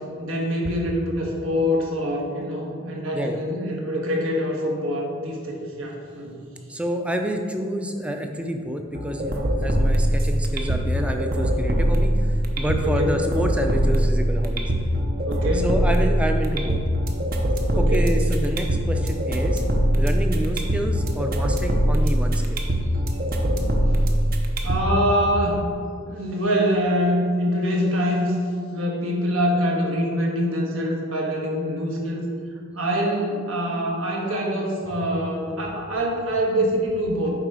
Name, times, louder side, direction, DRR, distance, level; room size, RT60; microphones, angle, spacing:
voice 1, 0.2-6.4 12.8-13.1 14.9-15.7 17.7-18.1 23.4-23.8 24.6-25.6 26.1-28.4 28.7-32.2 32.7-37.3, equal, 75° right, -1 dB, 1.4 m, -25 dB
voice 2, 6.7-14.7 15.5-16.8 17.8-19.6 19.9-22.6, equal, 5° right, 4 dB, 0.4 m, -28 dB
sound 1, 8.9-24.9, equal, 45° right, 0.7 m, -22 dB
8.9 x 3.8 x 4.8 m, 2.3 s
head